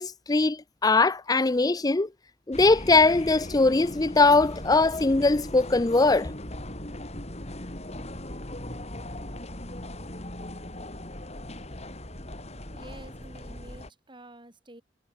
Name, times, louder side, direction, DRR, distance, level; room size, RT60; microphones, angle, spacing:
voice 1, 0.0-2.1 2.5-6.3, left 3 dB, 20° left, 0.5 m, -21 dB
sound 1, 2.5-13.9, left 1 dB, 35° left, 5.6 m, -39 dB
voice 2, 12.7-14.8, right 1 dB, 25° right, 5.7 m, -48 dB
head